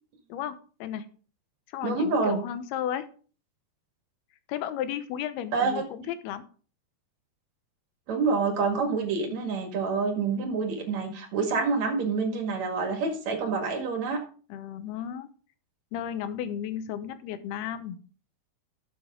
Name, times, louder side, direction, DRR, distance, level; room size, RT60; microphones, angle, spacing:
voice 1, 0.3-1.1 1.7-3.1 4.5-6.4 14.5-15.3 15.9-18.0, left 10 dB, 90° left, 11 dB, 2.9 m, -34 dB
voice 2, 1.8-2.4 5.5-5.8 8.1-14.2, right 4 dB, 50° right, 4 dB, 2.9 m, -27 dB
12.0 x 7.7 x 3.7 m, 0.40 s
omnidirectional pair, 4.4 m